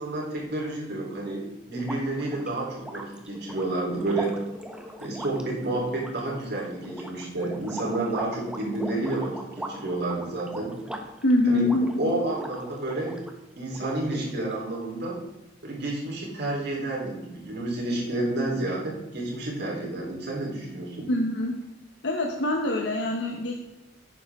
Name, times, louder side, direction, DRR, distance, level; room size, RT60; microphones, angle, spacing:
voice 1, 0.0-4.4 5.0-10.7 11.5-13.2 13.5-15.2 15.6-21.1, right 2 dB, 60° right, -3 dB, 3.7 m, -30 dB
sound 1, 1.7-13.3 13.7-14.5, equal, 5° right, 1.1 m, -40 dB
voice 2, 11.2-12.2 21.1-21.5 22.0-23.5, left 1 dB, 65° left, 1 dB, 1.1 m, -24 dB
11.5 x 9.0 x 3.6 m, 0.97 s
head